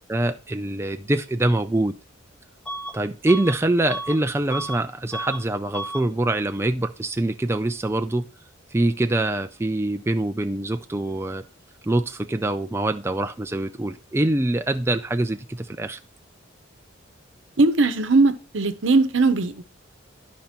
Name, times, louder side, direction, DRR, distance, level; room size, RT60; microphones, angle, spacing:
voice 1, 0.1-1.9 2.9-8.3 8.7-11.4 11.8-16.0, right 2 dB, 15° right, 0.4 m, -24 dB
Bus / Alarm, 2.7-3.0 3.3-4.8 5.1-5.4 5.7-6.1, right 1 dB, 5° left, 0.8 m, -33 dB
voice 2, 17.6-19.6, right 3 dB, 70° right, 0.9 m, -19 dB
12.0 x 5.2 x 4.4 m
head